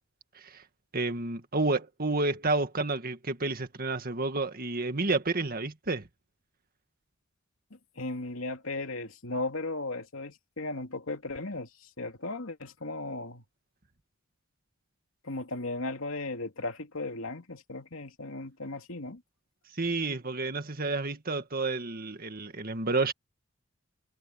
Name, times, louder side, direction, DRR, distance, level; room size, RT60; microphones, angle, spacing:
voice 1, 0.9-6.1 19.8-23.1, right 3 dB, 45° right, 1.9 m, -30 dB
voice 2, 8.0-11.7 12.0-13.4 15.2-19.2, left 2 dB, 85° left, 2.6 m, -36 dB
head